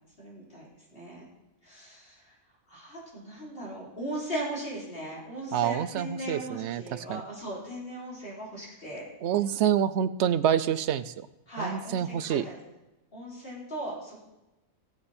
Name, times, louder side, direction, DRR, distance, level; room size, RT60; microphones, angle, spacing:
voice 1, 0.2-0.6 0.9-1.2 1.6-2.2 2.7-9.0 11.5-12.6 13.1-14.3, right 1 dB, 45° left, -5 dB, 4.2 m, -38 dB
voice 2, 5.5-7.2 9.2-11.3 11.6-12.5, right 9 dB, 65° right, 13 dB, 0.8 m, -27 dB
18.5 x 7.8 x 4.3 m, 0.99 s
omnidirectional pair, 1.4 m